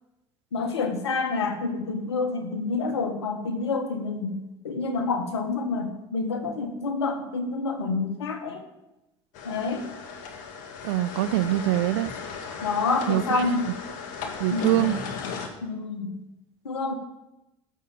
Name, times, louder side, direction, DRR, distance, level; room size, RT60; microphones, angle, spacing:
voice 1, 0.5-8.6 9.4-9.8 12.6-13.7 14.5-14.9 15.6-16.2 16.6-16.9, left 3 dB, 90° left, 1.6 m, -28 dB
sound 1, 9.3-15.5, left 5 dB, 65° left, 2.0 m, -36 dB
voice 2, 10.8-12.1 13.1-13.2 14.4-15.0, right 15 dB, 75° right, 0.5 m, -23 dB
14.5 x 6.7 x 7.7 m
hypercardioid pair, 70°, 14 cm